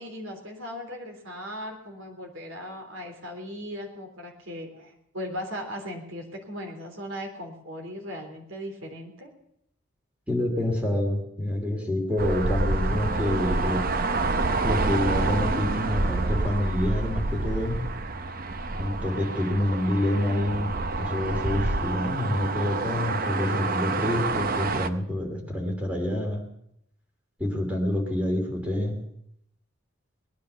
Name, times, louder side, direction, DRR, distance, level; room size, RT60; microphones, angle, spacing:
voice 1, 0.0-9.3, equal, 75° right, 3 dB, 3.4 m, -38 dB
voice 2, 10.3-13.8 14.6-17.8 18.8-26.4 27.4-29.0, left 1 dB, 5° right, 1 dB, 2.8 m, -27 dB
sound 1, 12.2-24.9, right 3 dB, 45° right, 0.7 m, -28 dB
19.5 x 10.5 x 6.8 m, 0.76 s
head